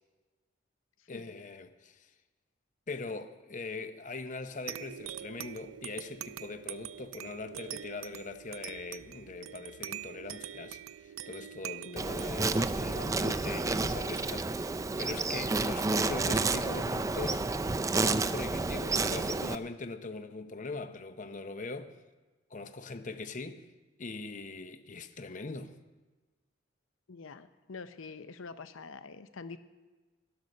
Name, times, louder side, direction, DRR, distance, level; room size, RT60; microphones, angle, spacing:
voice 1, 1.1-2.1 2.9-17.4 17.9-21.9 22.5-23.6 24.0-25.7, left 3 dB, 40° left, 0.7 m, -41 dB
sound 1, 4.7-15.8, right 11 dB, 85° right, 0.4 m, -45 dB
voice 2, 11.8-12.2 27.1-29.6, left 4 dB, 75° left, 0.6 m, -46 dB
Insect, 12.0-19.6, right 3 dB, 15° right, 0.4 m, -30 dB
13.0 x 10.5 x 6.5 m
head